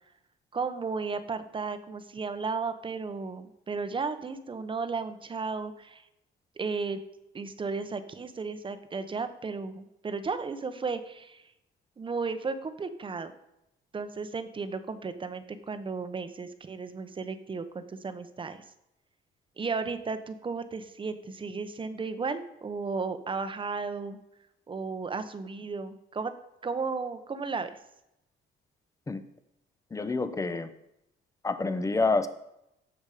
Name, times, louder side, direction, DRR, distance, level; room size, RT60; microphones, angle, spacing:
voice 1, 0.5-6.0 6.6-7.0 7.3-11.4 12.0-13.3 13.9-18.6 19.6-24.2 24.7-26.3 26.6-27.7, right 4 dB, 25° right, 10 dB, 1.0 m, -34 dB
voice 2, 29.9-30.7 31.4-32.3, left 3 dB, 15° left, 11 dB, 0.8 m, -27 dB
17.0 x 7.3 x 5.0 m, 0.84 s
cardioid pair, 150°, 21 cm